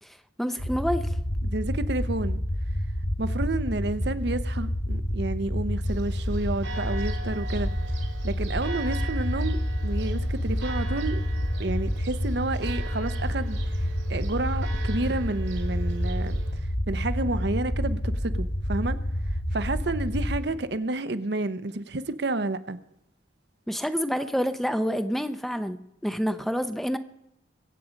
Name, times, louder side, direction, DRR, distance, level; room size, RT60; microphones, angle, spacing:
voice 1, 0.0-1.2 23.7-27.0, equal, ahead, 0.6 m, -28 dB
sound 1, 0.6-20.4, equal, 60° left, 3.5 m, -28 dB
voice 2, 1.4-2.4 3.2-7.7 8.2-11.2 11.6-16.4 16.9-19.0 19.5-22.8, right 2 dB, 60° right, 0.8 m, -30 dB
Church bell, 5.8-16.5, right 4 dB, 85° right, 3.0 m, -42 dB
23.0 x 8.5 x 5.2 m
head